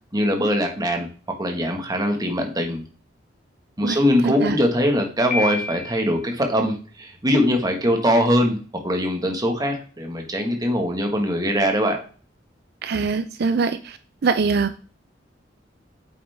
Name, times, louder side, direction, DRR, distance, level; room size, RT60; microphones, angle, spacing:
voice 1, 0.1-1.1 1.4-2.8 3.8-12.0, equal, 20° right, 3 dB, 1.7 m, -22 dB
voice 2, 4.2-4.6 12.8-14.0 14.2-14.8, right 4 dB, 60° right, 11 dB, 0.5 m, -23 dB
Piano, 5.3-6.3, left 3 dB, 50° left, 2.1 m, -29 dB
8.8 x 7.3 x 3.6 m, 0.39 s
head